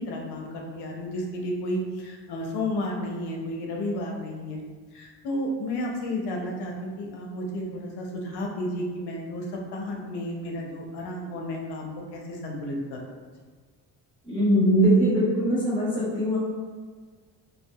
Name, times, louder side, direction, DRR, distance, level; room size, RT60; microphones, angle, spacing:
voice 1, 0.0-4.6 4.9-9.4 9.7-13.0, left 1 dB, 70° left, 0 dB, 0.7 m, -32 dB
voice 2, 14.2-16.4, right 1 dB, 10° left, -10 dB, 1.3 m, -21 dB
2.6 x 2.3 x 2.2 m, 1.5 s
cardioid pair, 85°, 41 cm